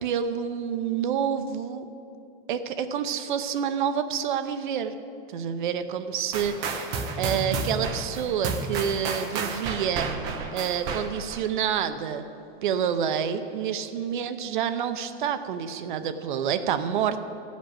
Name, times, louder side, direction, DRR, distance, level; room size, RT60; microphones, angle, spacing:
voice 1, 0.0-1.9 2.5-4.9 5.3-10.1 10.5-12.2 12.6-17.2, right 8 dB, 55° right, 10 dB, 0.7 m, -28 dB
sound 1, 6.3-11.4, right 4 dB, 15° right, 0.4 m, -31 dB
13.5 x 5.2 x 8.6 m, 2.8 s
supercardioid pair, 165°, 30 cm